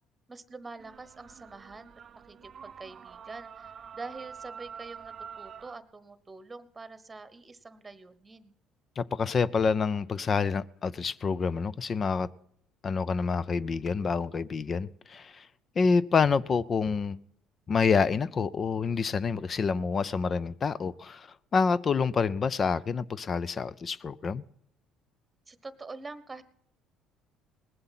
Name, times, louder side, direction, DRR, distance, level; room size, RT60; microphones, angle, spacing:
voice 1, 0.3-1.9 2.2-8.5 25.5-26.4, right 3 dB, 20° right, 1.1 m, -45 dB
sound 1, 0.8-5.8, right 7 dB, 45° right, 0.6 m, -46 dB
voice 2, 9.0-12.3 12.8-15.5 15.8-17.2 17.7-21.3 21.5-24.4, left 5 dB, 35° left, 0.5 m, -27 dB
19.5 x 7.8 x 5.8 m
cardioid pair, 95°, 0 cm